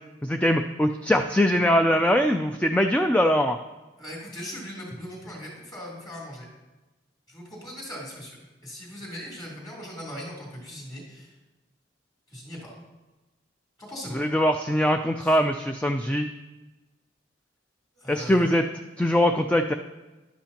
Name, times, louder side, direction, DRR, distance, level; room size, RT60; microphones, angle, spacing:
voice 1, 0.2-3.6 14.1-16.3 18.1-18.6 19.0-19.7, equal, 5° left, 6 dB, 0.3 m, -22 dB
voice 2, 4.0-6.4 7.3-8.4 8.6-11.3 12.3-12.7 13.8-14.2 15.2-15.4 18.0-18.6, equal, 20° left, -3 dB, 3.3 m, -39 dB
13.0 x 11.0 x 2.9 m, 1.1 s
head